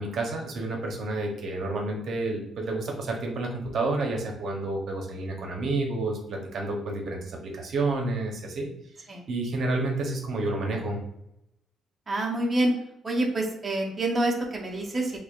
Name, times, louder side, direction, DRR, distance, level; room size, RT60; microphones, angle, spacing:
voice 1, 0.0-8.7 9.0-11.0, right 2 dB, 65° right, 1 dB, 0.8 m, -30 dB
voice 2, 12.1-12.7 13.0-15.2, right 1 dB, 25° right, -1 dB, 0.8 m, -27 dB
5.6 x 2.2 x 2.4 m, 0.80 s
cardioid pair, 90°, 0 cm